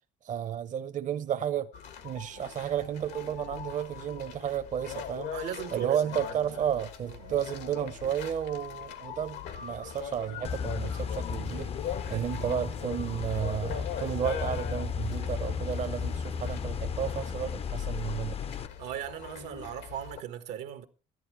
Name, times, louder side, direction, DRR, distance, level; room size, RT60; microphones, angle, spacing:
voice 1, 0.2-1.7 2.0-5.3 5.7-18.6, right 9 dB, 50° right, 0.8 m, -32 dB
sound 1, 1.7-20.2, left 8 dB, 85° left, 1.7 m, -42 dB
voice 2, 5.3-6.2 7.1-7.4 12.0-12.5 18.8-20.9, right 10 dB, 90° right, 1.4 m, -38 dB
sound 2, 10.4-18.7, left 7 dB, 35° left, 0.6 m, -34 dB
13.5 x 11.0 x 4.6 m
cardioid pair, 110°, 17 cm